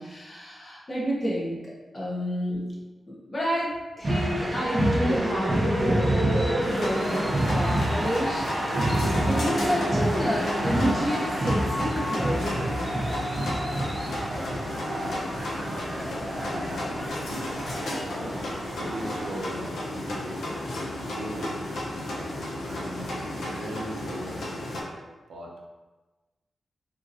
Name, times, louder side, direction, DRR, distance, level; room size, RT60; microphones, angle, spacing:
voice 1, 0.0-2.6 3.1-7.3 7.5-12.9, equal, 30° left, -6 dB, 1.0 m, -30 dB
sound 1, 4.0-19.4, right 1 dB, 25° right, 0.7 m, -28 dB
sound 2, 6.6-24.8, left 1 dB, 80° left, 0.7 m, -33 dB
voice 2, 14.6-17.6 18.1-18.4 18.7-21.6 22.0-25.0 25.3-25.5, right 1 dB, 80° right, -4 dB, 0.6 m, -41 dB
3.5 x 2.9 x 2.6 m, 1.2 s
wide cardioid pair, 145°, 0 cm